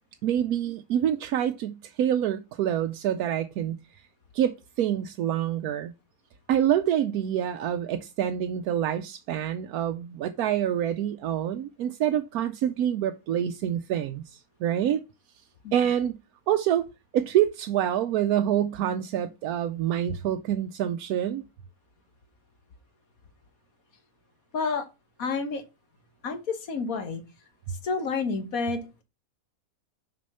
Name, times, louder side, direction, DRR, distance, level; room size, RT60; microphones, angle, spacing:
voice 1, 0.2-4.0 4.3-5.9 6.5-15.0 15.7-16.2 16.5-16.9 17.1-21.4, right 10 dB, 85° right, 1.1 m, -26 dB
voice 2, 24.5-24.8 25.2-25.6 26.2-27.2 27.8-29.0, left 4 dB, 70° left, 1.7 m, -29 dB
6.2 x 5.2 x 5.6 m
omnidirectional pair, 1.5 m